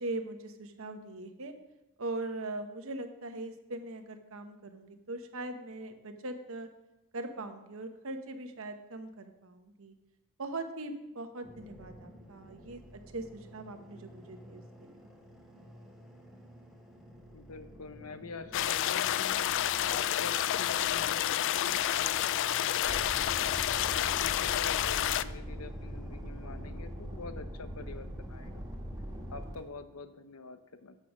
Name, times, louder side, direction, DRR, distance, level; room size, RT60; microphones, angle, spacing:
voice 1, 0.0-1.5 2.0-6.7 7.1-9.9 10.4-15.1, right 2 dB, 65° right, 7 dB, 1.0 m, -41 dB
sound 1, 11.4-29.4, equal, ahead, 1.3 m, -52 dB
voice 2, 17.3-19.4 19.9-23.4 23.9-28.6 29.3-31.0, left 4 dB, 85° left, 10 dB, 0.7 m, -46 dB
sound 2, 18.5-25.2, left 11 dB, 60° left, 0.3 m, -29 dB
sound 3, 22.8-29.6, equal, 20° right, 1.8 m, -42 dB
8.4 x 6.7 x 6.0 m, 0.93 s
head